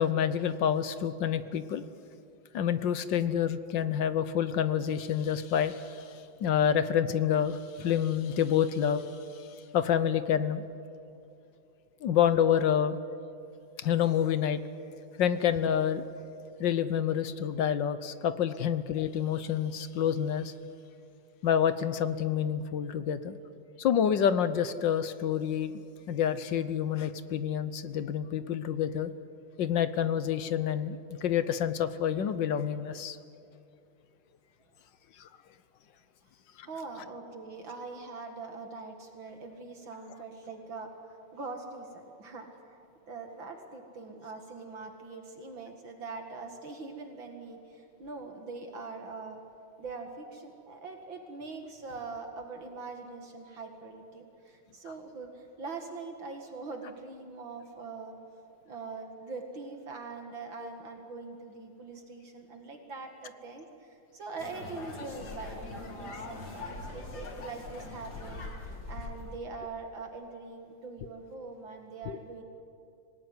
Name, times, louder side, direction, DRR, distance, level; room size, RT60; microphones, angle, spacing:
voice 1, 0.0-1.9 2.5-6.0 6.4-9.1 9.7-10.7 12.0-13.0 13.8-14.6 15.2-16.0 16.6-20.5 21.4-23.4 23.8-25.7 26.1-29.1 29.6-33.2 35.2-35.3 36.6-36.7 72.1-72.2, left 9 dB, 65° left, 12 dB, 1.4 m, -28 dB
voice 2, 36.7-42.8 43.1-49.4 49.8-58.1 58.7-72.4, right 4 dB, 60° right, 4 dB, 2.6 m, -43 dB
sound 1, 64.4-69.4, left 3 dB, 50° left, 2.8 m, -42 dB
25.0 x 18.5 x 9.6 m, 2.6 s
omnidirectional pair, 2.4 m